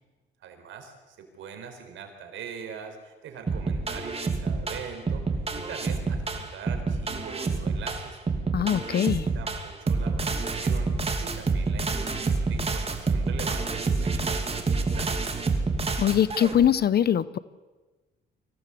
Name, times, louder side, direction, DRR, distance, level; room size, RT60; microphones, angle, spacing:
voice 1, 0.4-5.2 5.5-8.2 8.6-9.0 9.3-15.1, right 6 dB, 75° right, 5 dB, 4.5 m, -42 dB
sound 1, 3.5-16.7, right 4 dB, 30° right, 2.8 m, -28 dB
voice 2, 8.5-9.3 16.0-17.4, left 9 dB, 55° left, 17 dB, 0.7 m, -22 dB
24.5 x 17.0 x 8.5 m, 1.3 s
cardioid pair, 90°, 20 cm